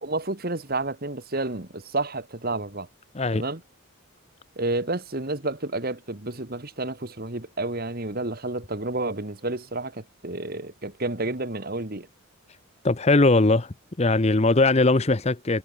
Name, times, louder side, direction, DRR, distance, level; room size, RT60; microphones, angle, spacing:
voice 1, 0.0-2.9 3.3-3.6 4.6-12.1, right 2 dB, 45° right, 1.8 m, -30 dB
voice 2, 12.8-15.6, left 2 dB, 30° left, 0.7 m, -20 dB
head